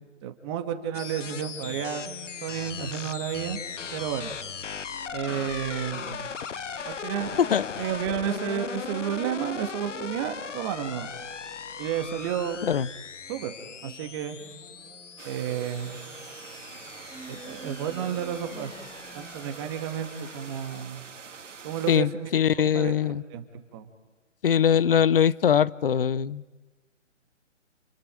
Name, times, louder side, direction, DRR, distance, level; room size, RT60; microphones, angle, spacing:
voice 1, 0.2-2.1 2.4-3.6 3.9-4.3 5.1-6.3 6.9-7.3 7.8-11.1 11.8-12.6 13.3-13.5 13.8-14.4 15.2-16.0 17.3-18.7 19.1-21.0 21.6-22.3 22.6-22.9 23.3-23.4 23.7-23.9, right 9 dB, 20° right, 1.8 m, -31 dB
sound 1, 0.9-20.8, left 6 dB, 70° left, 1.1 m, -39 dB
sound 2, 3.8-20.4, right 3 dB, 5° right, 1.2 m, -51 dB
sound 3, 15.2-22.0, right 5 dB, 70° right, 2.1 m, -45 dB
voice 2, 21.9-23.2 24.4-26.4, left 8 dB, 45° left, 0.7 m, -22 dB
29.0 x 28.5 x 5.1 m
hypercardioid pair, 150°, 38 cm